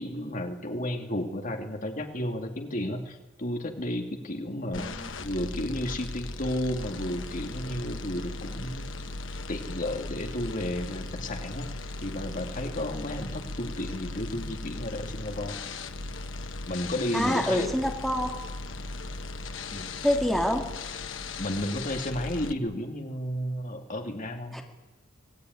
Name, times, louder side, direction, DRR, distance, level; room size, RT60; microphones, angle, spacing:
voice 1, 0.0-4.8 5.2-9.0 9.5-11.7 12.0-15.6 16.7-17.7 19.7-19.9 21.4-24.6, left 1 dB, 40° left, 4 dB, 2.5 m, -32 dB
sound 1, 4.7-22.5, left 3 dB, 70° left, 1.4 m, -38 dB
voice 2, 4.7-5.1 14.3-14.4 17.1-18.3 20.0-20.7 24.5-24.6, equal, ahead, 1 dB, 2.6 m, -26 dB
26.0 x 19.5 x 9.5 m, 1.1 s
head